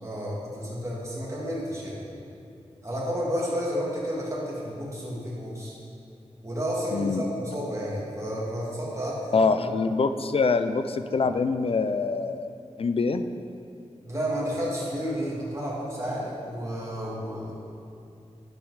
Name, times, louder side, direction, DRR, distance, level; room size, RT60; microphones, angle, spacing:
voice 1, 0.0-2.0 2.8-5.8 6.4-9.5 14.0-17.5, equal, 25° right, -6 dB, 2.2 m, -31 dB
voice 2, 6.9-7.2 9.3-12.5 12.8-13.2, left 4 dB, 55° left, 10 dB, 0.4 m, -24 dB
10.5 x 5.3 x 4.8 m, 2.6 s
wide cardioid pair, 80°, 12 cm